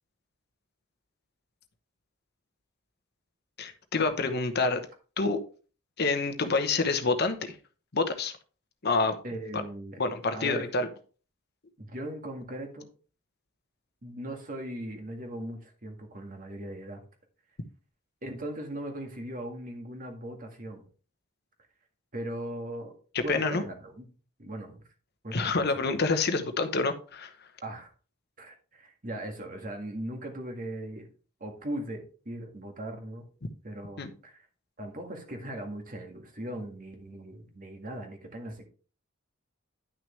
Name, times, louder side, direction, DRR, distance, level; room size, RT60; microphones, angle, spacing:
voice 1, 3.6-4.8 5.2-5.4 6.0-7.5 7.9-8.3 8.8-9.1 9.5-9.6 10.0-10.9 23.3-23.6 25.3-27.3 34.0-34.1, left 3 dB, 50° left, 1.0 m, -27 dB
voice 2, 9.2-10.0 10.3-10.7 11.8-12.9 14.0-17.0 18.2-20.8 22.1-22.9 23.2-24.1 24.4-24.8 25.2-25.8 27.6-27.9 28.4-31.1 31.4-33.2 33.6-34.5 34.8-38.7, right 1 dB, 40° right, 2.0 m, -39 dB
10.5 x 6.2 x 3.3 m
head